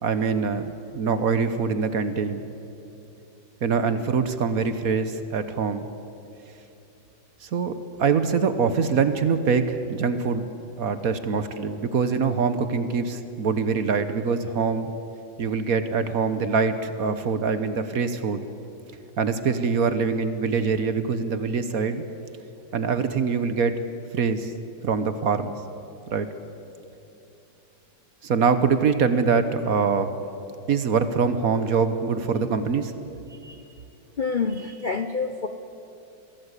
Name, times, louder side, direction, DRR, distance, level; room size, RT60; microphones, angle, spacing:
voice 1, 0.0-2.4 3.6-5.9 7.4-10.4 10.8-14.9 15.4-18.4 19.2-22.0 22.7-23.8 24.1-24.5 24.8-25.6 26.1-26.3 28.2-30.1 30.7-32.9, right 5 dB, 55° right, 10 dB, 1.2 m, -24 dB
voice 2, 34.2-35.5, left 5 dB, 70° left, 8 dB, 0.4 m, -28 dB
22.5 x 16.5 x 8.2 m, 2.8 s
omnidirectional pair, 2.1 m